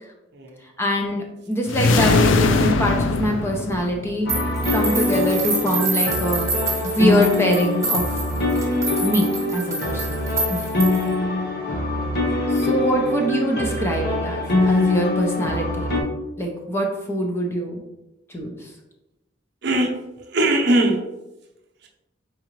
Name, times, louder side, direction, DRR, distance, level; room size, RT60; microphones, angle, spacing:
voice 1, 0.8-4.3 4.7-6.5 6.8-8.1 9.0-10.2 10.5-10.7 12.5-15.9 16.4-17.8 18.3-18.7, equal, 15° left, 0 dB, 0.6 m, -24 dB
sound 1, 1.7-4.3, left 3 dB, 75° left, 0.4 m, -20 dB
sound 2, 4.3-16.0, left 2 dB, 55° left, 0.9 m, -23 dB
sound 3, 4.3-11.1, right 3 dB, 15° right, 1.0 m, -27 dB
voice 2, 19.6-19.9 20.3-21.0, right 1 dB, 60° right, 0 dB, 0.7 m, -21 dB
4.3 x 3.7 x 3.1 m, 0.97 s
head